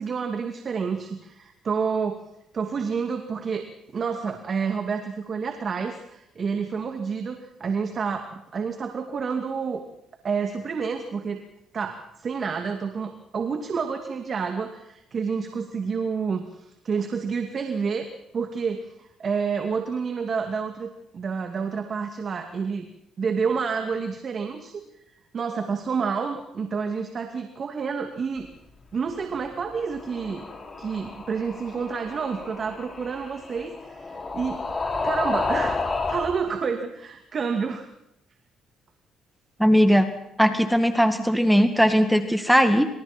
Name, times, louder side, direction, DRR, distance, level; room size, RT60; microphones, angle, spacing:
voice 1, 0.0-2.2 2.5-9.8 10.2-11.4 11.7-18.1 18.3-22.9 23.2-24.8 25.3-28.5 28.9-30.4 30.8-34.6 35.0-37.9, right 5 dB, 45° right, 5 dB, 2.6 m, -29 dB
sound 1, 29.6-36.4, left 3 dB, 30° left, 5.6 m, -31 dB
voice 2, 39.6-40.1 40.4-42.9, equal, ahead, 8 dB, 2.0 m, -19 dB
27.0 x 26.5 x 4.5 m, 0.82 s
cardioid pair, 80°, 0 cm